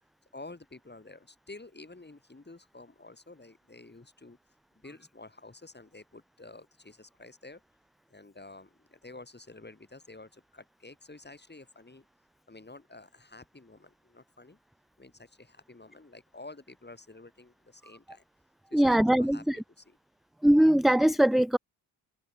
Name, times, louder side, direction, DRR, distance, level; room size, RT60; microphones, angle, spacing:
voice 1, 0.3-4.4 4.8-7.6 8.1-12.1 12.5-14.6 15.0-18.2 18.7-19.4 19.8-20.0, left 2 dB, 20° left, 4.1 m, -50 dB
voice 2, 18.7-19.6 20.4-21.6, right 1 dB, ahead, 0.4 m, -22 dB
supercardioid pair, 50°, 47 cm